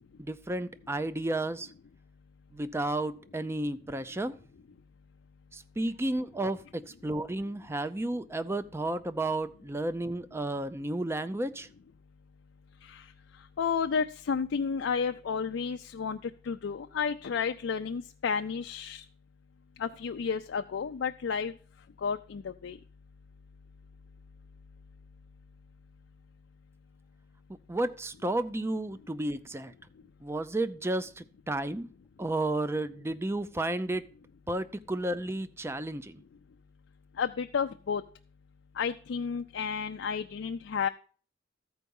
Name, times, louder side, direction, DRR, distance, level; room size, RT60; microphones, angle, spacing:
voice 1, 0.2-1.7 2.5-4.3 5.5-11.7 27.7-29.7 30.2-31.9 32.2-34.1 34.5-36.2, right 1 dB, 15° right, 12 dB, 0.4 m, -32 dB
voice 2, 13.6-19.0 19.8-21.5 22.0-22.8 37.2-38.0 38.8-40.9, left 6 dB, 65° left, 6 dB, 0.4 m, -31 dB
13.5 x 4.7 x 5.3 m, 0.43 s
head